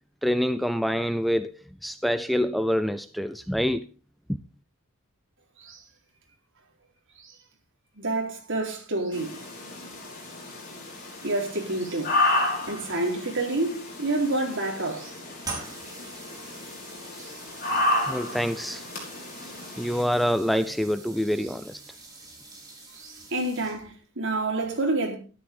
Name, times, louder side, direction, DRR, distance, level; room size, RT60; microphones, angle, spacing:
voice 1, 0.2-1.5 1.8-3.9 4.3-4.4 18.1-18.8 19.8-21.8, equal, ahead, 0.5 m, -26 dB
voice 2, 8.0-9.4 11.2-12.2 12.6-15.1 17.2-17.4 22.9-25.1, right 2 dB, 60° right, 4.2 m, -28 dB
sound 1, 9.1-20.0, left 2 dB, 45° left, 5.7 m, -31 dB
sound 2, 15.4-24.0, right 3 dB, 15° right, 4.3 m, -44 dB
13.0 x 11.5 x 3.8 m
head